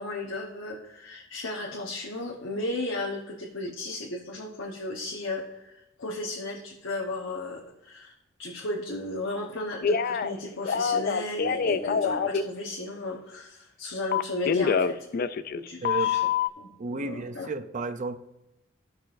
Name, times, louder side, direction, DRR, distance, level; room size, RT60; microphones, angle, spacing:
voice 1, 0.0-8.1 8.4-15.1 15.5-16.2 16.6-17.5, left 2 dB, 75° left, 1.1 m, -35 dB
Telephone, 9.8-10.3 10.6-12.4 14.1-15.6 15.8-16.5, left 6 dB, 50° left, 0.4 m, -25 dB
voice 2, 15.8-16.2 16.8-18.2, right 3 dB, 40° right, 0.5 m, -32 dB
15.0 x 6.1 x 2.6 m
head